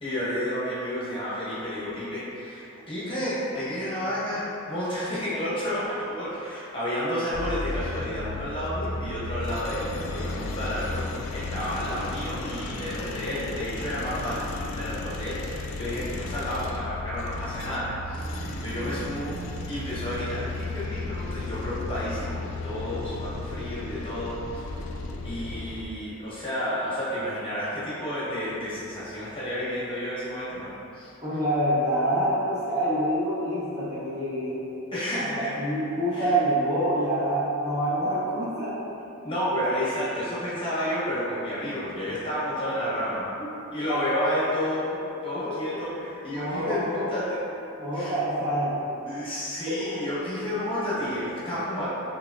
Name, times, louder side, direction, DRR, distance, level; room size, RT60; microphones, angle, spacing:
voice 1, 0.0-24.6 25.2-31.1 34.9-35.5 36.1-36.3 39.2-43.3 43.7-47.4 47.9-48.1 49.1-51.9, equal, 25° left, -9 dB, 1.0 m, -31 dB
sound 1, 7.3-25.8, left 2 dB, 75° left, 0.4 m, -34 dB
voice 2, 31.2-34.6 35.2-35.3 35.6-38.8 39.5-39.6 43.4-43.5 43.9-44.0 45.3-45.6 46.3-47.2 47.8-49.1 49.8-49.9, right 1 dB, 15° right, -10 dB, 1.0 m, -26 dB
5.9 x 3.4 x 2.4 m, 2.8 s
head